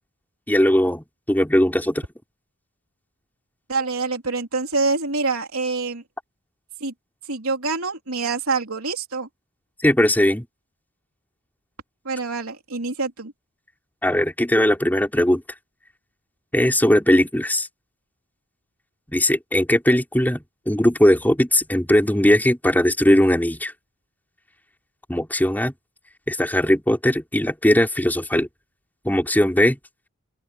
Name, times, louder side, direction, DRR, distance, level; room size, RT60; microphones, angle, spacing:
voice 1, 0.5-2.0 9.8-10.5 14.0-15.4 16.5-17.7 19.1-23.7 25.1-25.7 26.3-28.5 29.0-29.8, left 1 dB, 10° left, 4.9 m, -19 dB
voice 2, 3.7-6.0 6.8-6.9 7.3-9.3 12.1-13.3, right 3 dB, 75° right, 3.6 m, -26 dB
open air
head